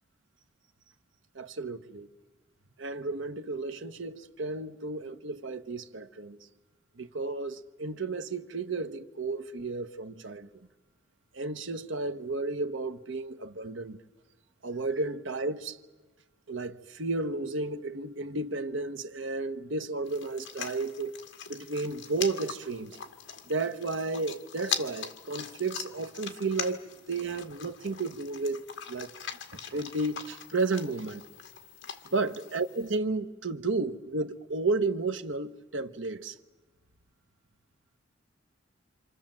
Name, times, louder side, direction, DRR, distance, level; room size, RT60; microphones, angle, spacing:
voice 1, 1.3-2.1 2.8-6.4 7.0-10.5 11.3-14.0 14.6-15.8 16.5-21.1 21.5-23.0 23.5-28.6 28.9-29.1 29.5-31.2 32.0-36.4, right 3 dB, 75° right, 1.2 m, -33 dB
sound 1, 20.1-33.0, left 7 dB, 70° left, 1.9 m, -41 dB
27.0 x 27.0 x 7.6 m
head